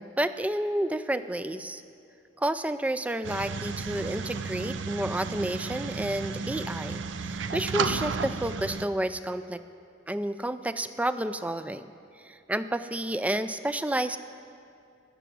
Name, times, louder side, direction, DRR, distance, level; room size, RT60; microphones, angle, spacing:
voice 1, 0.0-1.8 2.4-9.6 10.1-11.8 12.2-14.2, right 1 dB, 5° right, 12 dB, 0.4 m, -30 dB
sound 1, 3.2-8.9, right 4 dB, 70° right, 0.5 m, -33 dB
15.0 x 7.1 x 9.4 m, 2.4 s
head